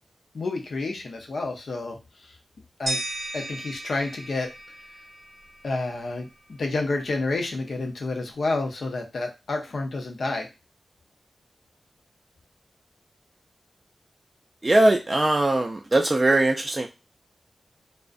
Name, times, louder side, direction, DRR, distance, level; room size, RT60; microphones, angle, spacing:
voice 1, 0.3-2.3 2.8-3.0 3.3-4.5 5.6-10.5, left 3 dB, 70° left, 3 dB, 0.6 m, -29 dB
sound 1, 2.9-5.8, right 1 dB, 65° right, 0.8 m, -35 dB
voice 2, 14.6-16.9, right 2 dB, 35° right, 2 dB, 0.3 m, -20 dB
2.4 x 2.0 x 2.4 m, 0.26 s
cardioid pair, 50°, 0 cm